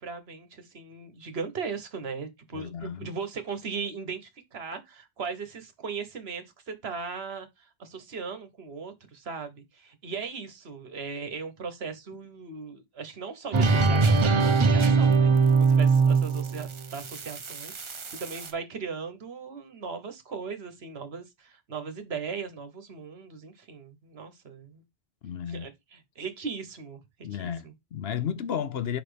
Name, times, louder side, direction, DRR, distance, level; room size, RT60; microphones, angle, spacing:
voice 1, 0.0-24.8 25.5-27.7, right 5 dB, 65° right, 1.3 m, -38 dB
voice 2, 2.5-3.1 25.2-25.7 27.2-29.0, left 8 dB, 65° left, 0.9 m, -33 dB
sound 1, 13.5-18.5, right 4 dB, 35° right, 0.5 m, -22 dB
5.2 x 4.2 x 5.0 m
omnidirectional pair, 1.2 m